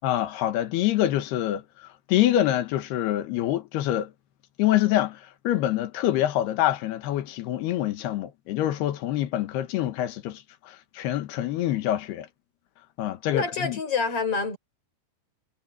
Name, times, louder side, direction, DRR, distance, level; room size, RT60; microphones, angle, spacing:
voice 1, 0.0-4.1 4.6-12.3 13.0-13.8, left 13 dB, 75° left, 3.3 m, -26 dB
voice 2, 13.3-14.6, left 5 dB, 35° left, 6.0 m, -27 dB
omnidirectional pair, 4.9 m